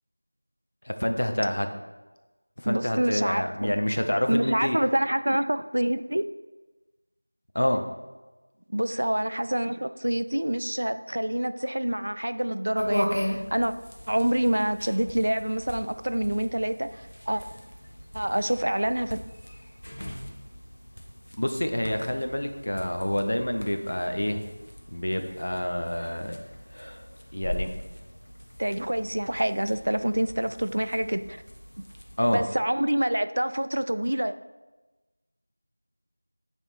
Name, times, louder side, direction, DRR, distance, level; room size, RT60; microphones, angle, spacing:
voice 1, 0.8-1.7 2.6-4.8 7.5-7.8 21.4-24.4 24.9-26.4 27.3-27.7 32.2-32.4, left 1 dB, 55° left, 6 dB, 0.7 m, -27 dB
voice 2, 2.7-3.7 4.3-6.3 8.7-13.7 14.1-17.4 18.1-19.2 28.6-31.4 32.3-34.3, right 1 dB, 65° right, 12 dB, 0.4 m, -26 dB
sound 1, 12.8-32.4, equal, 90° left, 1.1 m, -39 dB
8.8 x 3.6 x 4.2 m, 1.2 s
figure-of-eight pair, 180°, 0 cm